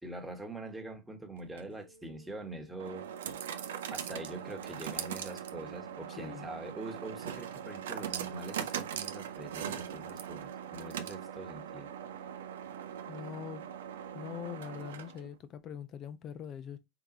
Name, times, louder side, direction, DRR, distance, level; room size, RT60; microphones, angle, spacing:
voice 1, 0.0-3.1 3.9-11.9, right 2 dB, 5° right, 1.3 m, -44 dB
sound 1, 1.4-15.4, right 9 dB, 75° right, 0.5 m, -41 dB
voice 2, 6.2-6.5 13.1-13.6 14.1-16.8, left 8 dB, 40° left, 0.7 m, -43 dB
3.9 x 3.4 x 2.7 m
hypercardioid pair, 85°, 0 cm